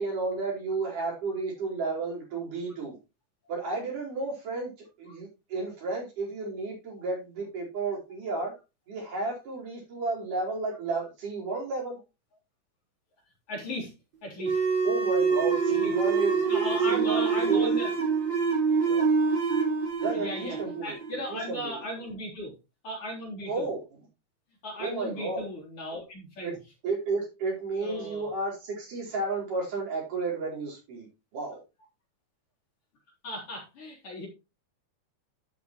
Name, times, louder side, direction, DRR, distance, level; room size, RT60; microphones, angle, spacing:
voice 1, 0.0-3.0 3.5-4.7 5.0-8.5 8.9-12.0 14.8-17.9 18.8-19.1 20.0-21.0 21.3-21.8 23.5-23.8 24.8-25.4 26.4-26.6 26.8-31.1 31.3-31.6, right 3 dB, 90° right, -3 dB, 6.0 m, -32 dB
voice 2, 13.5-13.9 14.2-14.8 15.8-15.9 16.5-17.9 20.1-22.5 22.8-23.7 24.6-26.6 27.8-28.3 33.2-34.3, equal, 45° left, -3 dB, 4.4 m, -37 dB
sound 1, 14.4-21.6, right 5 dB, 40° right, 3.0 m, -26 dB
12.0 x 7.2 x 3.1 m, 0.27 s
omnidirectional pair, 3.6 m